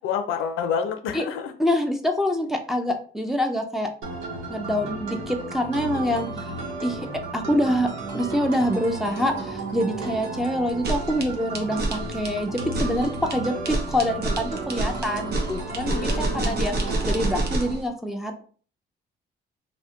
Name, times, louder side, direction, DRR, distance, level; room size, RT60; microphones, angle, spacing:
voice 1, 0.0-1.5 15.8-16.6, left 7 dB, 90° left, 7 dB, 0.5 m, -28 dB
voice 2, 1.6-3.9 4.5-6.3 6.8-7.0 7.3-7.9 8.1-18.4, equal, ahead, 2 dB, 0.5 m, -25 dB
sound 1, 4.0-17.7, right 3 dB, 90° right, 0.9 m, -34 dB
sound 2, 10.7-17.8, right 2 dB, 55° right, 0.8 m, -27 dB
2.6 x 2.1 x 3.7 m, 0.43 s
cardioid pair, 90°, 20 cm